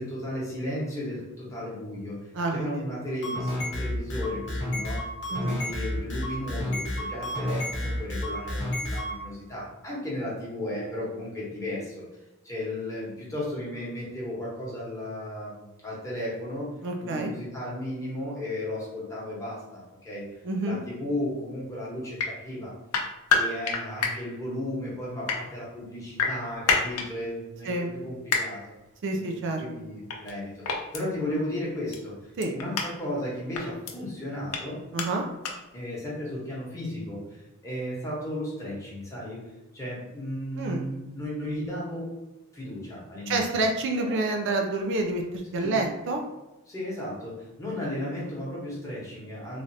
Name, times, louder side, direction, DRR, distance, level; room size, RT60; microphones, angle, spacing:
voice 1, 0.0-2.2 2.5-12.0 12.4-16.7 17.0-20.3 20.6-22.7 23.3-28.7 29.1-34.8 35.7-39.4 39.7-42.1 42.5-43.4 44.0-44.2 45.6-45.9 46.7-49.6, left 1 dB, 15° left, -6 dB, 1.0 m, -35 dB
voice 2, 2.3-2.9 5.3-5.6 16.8-17.3 20.4-20.8 27.6-27.9 29.0-29.6 32.4-32.5 34.9-35.2 40.6-40.8 43.3-46.2, right 2 dB, 55° right, 2 dB, 0.4 m, -28 dB
sound 1, 3.1-9.1, left 1 dB, 50° left, 0.8 m, -30 dB
sound 2, 22.2-22.3 22.9-24.1 25.0-25.4 26.2-27.1 28.3-28.4 30.1-30.3 30.6-31.0 31.9-32.0 32.4-32.9 33.5-33.9 34.5-34.6 35.0-35.1 35.4-35.5, left 5 dB, 75° left, 0.5 m, -26 dB
3.2 x 2.4 x 2.6 m, 1.0 s
head